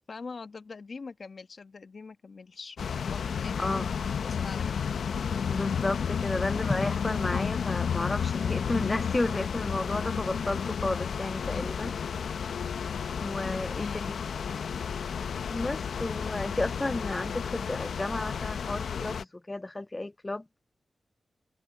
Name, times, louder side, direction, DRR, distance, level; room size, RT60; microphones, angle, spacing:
voice 1, 0.0-4.8 11.5-12.0 13.7-14.1, left 4 dB, 55° left, 1.3 m, -43 dB
sound 1, 2.8-19.2, left 7 dB, 85° left, 0.8 m, -32 dB
voice 2, 3.6-3.9 5.5-11.9 13.2-13.9 15.5-20.4, left 2 dB, 25° left, 0.3 m, -32 dB
cardioid pair, 80°, 0 cm